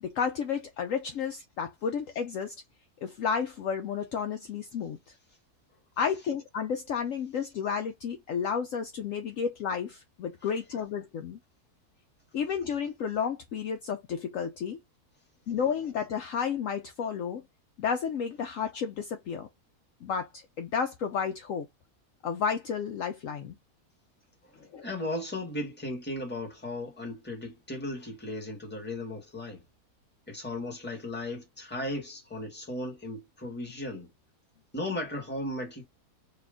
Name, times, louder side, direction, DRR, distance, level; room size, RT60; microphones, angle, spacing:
voice 1, 0.0-2.5 3.0-5.0 6.0-11.4 12.3-14.8 15.5-17.4 17.8-19.5 20.0-21.7 22.2-23.6 24.7-24.9, left 7 dB, 65° left, 0.9 m, -32 dB
voice 2, 24.6-29.6 30.3-34.1 34.7-35.8, left 1 dB, 5° left, 1.2 m, -36 dB
3.4 x 2.3 x 3.6 m
omnidirectional pair, 1.6 m